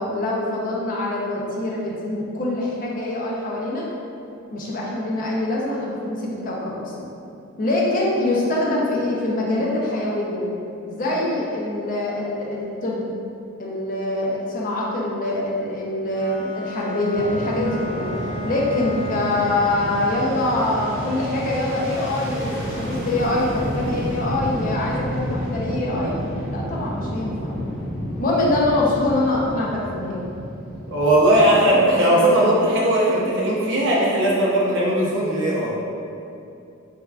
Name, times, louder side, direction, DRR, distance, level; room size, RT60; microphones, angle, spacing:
voice 1, 0.0-3.9 4.5-7.1 7.6-10.5 10.9-13.0 13.6-18.1 18.4-26.1 26.5-27.6 28.2-30.2 32.1-32.2, left 2 dB, 40° left, -3 dB, 0.4 m, -24 dB
Bowed string instrument, 16.0-20.3, left 1 dB, 20° left, 0.9 m, -35 dB
Fixed-wing aircraft airplane, 17.1-32.3, equal, 5° right, 0.6 m, -30 dB
voice 2, 30.9-35.7, right 1 dB, 55° right, -5 dB, 0.5 m, -18 dB
3.3 x 2.1 x 2.4 m, 2.6 s
head